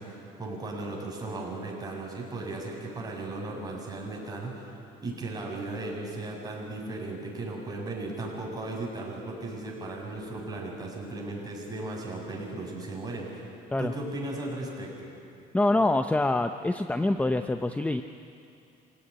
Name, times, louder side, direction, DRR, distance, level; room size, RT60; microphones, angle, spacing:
voice 1, 0.0-13.5 13.8-15.1, right 2 dB, 20° right, -2 dB, 7.3 m, -36 dB
voice 2, 15.5-18.0, left 2 dB, 10° left, 8 dB, 0.7 m, -25 dB
26.0 x 17.5 x 10.0 m, 2.5 s
cardioid pair, 110°, 17 cm